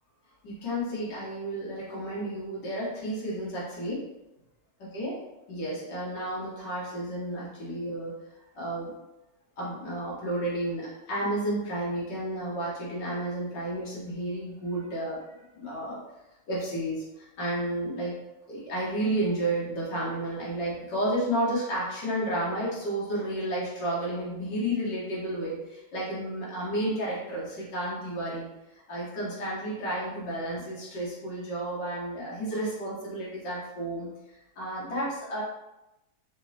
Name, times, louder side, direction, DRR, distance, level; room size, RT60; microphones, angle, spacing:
voice 1, 0.4-4.0 4.9-5.2 5.5-8.1 8.5-8.9 9.6-16.0 16.5-18.1 18.5-35.4, right 1 dB, 90° left, -6 dB, 1.7 m, -32 dB
5.1 x 2.0 x 2.7 m, 0.96 s
omnidirectional pair, 1.8 m